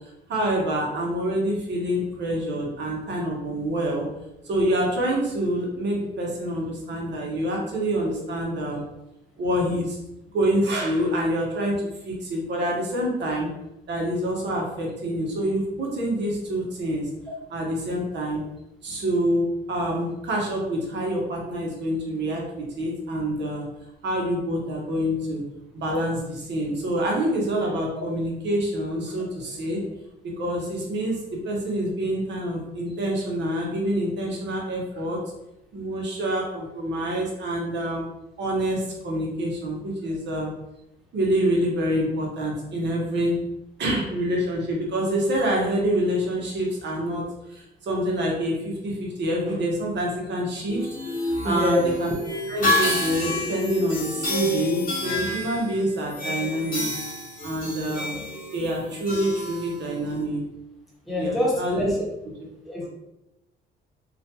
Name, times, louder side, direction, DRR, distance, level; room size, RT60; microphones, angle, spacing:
voice 1, 0.3-4.1 4.4-8.8 9.4-10.0 10.3-11.7 12.0-13.5 13.9-17.1 17.5-18.4 18.8-23.6 24.0-25.4 25.7-29.8 30.2-35.2 35.7-38.1 38.4-40.5 41.1-43.4 43.8-47.2 47.5-52.1 52.5-56.9 57.4-58.1 58.5-60.4 61.2-61.9 62.8-62.9, right 1 dB, 60° right, -2 dB, 0.9 m, -26 dB
sound 1, 50.7-60.2, left 1 dB, 45° left, 0.9 m, -29 dB
voice 2, 51.4-51.9 61.1-61.9 62.7-62.9, left 1 dB, ahead, -5 dB, 0.9 m, -25 dB
2.5 x 2.2 x 2.8 m, 0.91 s
cardioid pair, 90°, 20 cm